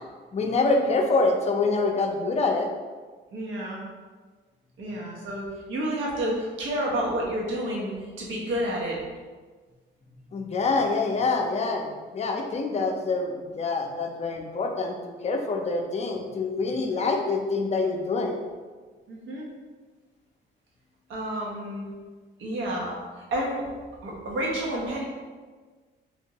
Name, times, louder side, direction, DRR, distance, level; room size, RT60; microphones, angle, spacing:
voice 1, 0.3-2.7 10.3-15.0 15.2-18.4, left 3 dB, 35° left, 2 dB, 0.5 m, -26 dB
voice 2, 3.3-3.8 4.8-9.0 16.9-17.0 19.1-19.5 21.1-21.9 22.4-23.7 24.0-25.0, right 1 dB, 75° right, -3 dB, 0.9 m, -30 dB
3.5 x 2.5 x 2.9 m, 1.4 s
cardioid pair, 90°, 20 cm